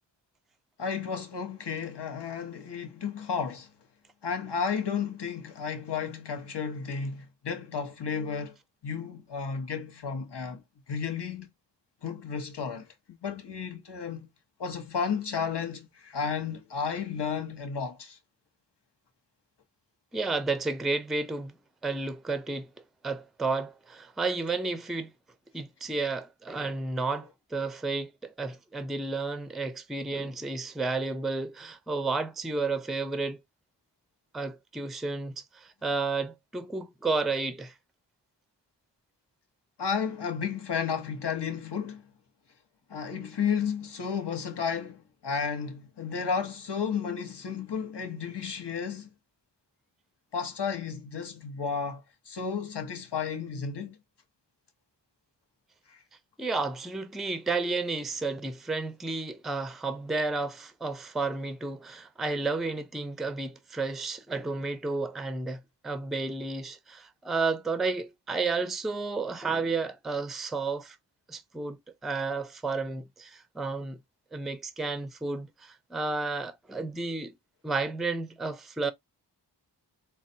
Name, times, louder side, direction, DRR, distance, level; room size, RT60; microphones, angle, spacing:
voice 1, 0.8-3.7 4.2-8.6 8.8-10.6 10.9-11.5 12.0-14.3 14.6-18.2 39.8-42.1 42.9-49.1 50.3-54.0 55.9-56.0, left 6 dB, 70° left, 1.1 m, -33 dB
voice 2, 20.1-21.5 21.8-22.7 23.0-25.1 25.5-33.4 34.3-37.7 56.4-71.0 71.3-74.0 74.3-77.3 77.6-78.9, right 3 dB, ahead, 0.4 m, -32 dB
4.0 x 2.3 x 2.7 m
wide cardioid pair, 60°, 43 cm